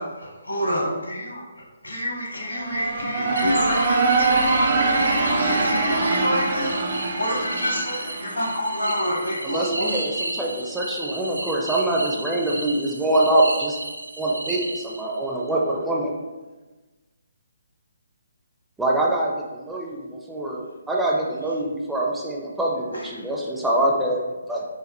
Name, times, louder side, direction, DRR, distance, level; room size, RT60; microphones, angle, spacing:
voice 1, 0.5-1.4 1.8-4.0 5.2-6.8 7.2-9.9, equal, 80° left, -1 dB, 1.1 m, -27 dB
sound 1, 2.4-9.2, right 3 dB, 50° right, 0.7 m, -23 dB
voice 2, 2.8-5.1, left 2 dB, 60° left, 0 dB, 0.5 m, -31 dB
sound 2, 3.4-15.3, right 2 dB, 75° right, 0.4 m, -33 dB
voice 3, 9.4-13.8 14.2-16.1 18.8-24.6, right 1 dB, 5° right, -3 dB, 0.4 m, -24 dB
4.9 x 2.3 x 3.0 m, 1.2 s
figure-of-eight pair, 140°, 0 cm